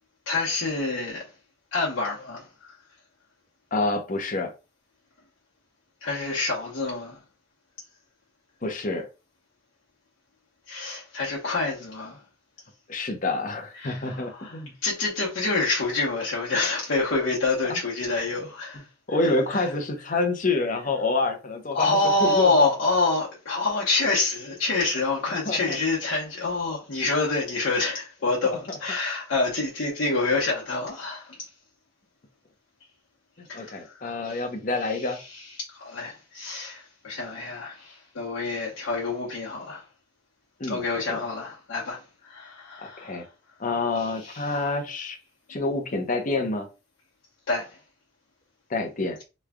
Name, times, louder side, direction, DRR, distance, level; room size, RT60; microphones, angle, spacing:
voice 1, 0.3-1.2 1.7-2.7 6.0-7.2 10.7-12.2 13.8-18.8 19.5-19.7 21.7-31.3 33.5-34.4 34.8-35.4 35.7-39.8 40.7-43.2 44.2-44.5 47.5-47.7, left 3 dB, 90° left, 1.0 m, -27 dB
voice 2, 3.7-4.5 8.6-9.1 12.9-14.7 17.7-17.8 19.1-22.7 25.5-25.8 28.4-28.8 33.4-35.2 40.6-41.2 42.8-43.2 43.6-45.2 45.5-46.7 48.7-49.2, left 3 dB, 40° left, 0.7 m, -28 dB
3.1 x 2.3 x 3.5 m
head